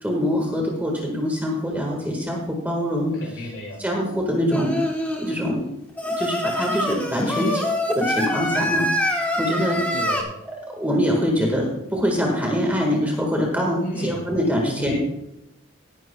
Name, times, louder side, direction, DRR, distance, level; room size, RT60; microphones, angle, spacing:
voice 1, 0.0-3.1 3.8-4.8 5.2-5.6 6.0-7.6 7.9-9.8 10.8-15.0, equal, 10° right, 0 dB, 1.7 m, -24 dB
voice 2, 3.1-3.8 4.3-4.8 7.2-7.6 9.9-10.2 13.8-14.2 14.7-15.0, equal, 90° left, -2 dB, 3.1 m, -33 dB
Singing, 4.5-5.3 6.0-10.2, equal, 10° left, 1.2 m, -25 dB
18.0 x 11.0 x 2.3 m, 0.85 s
head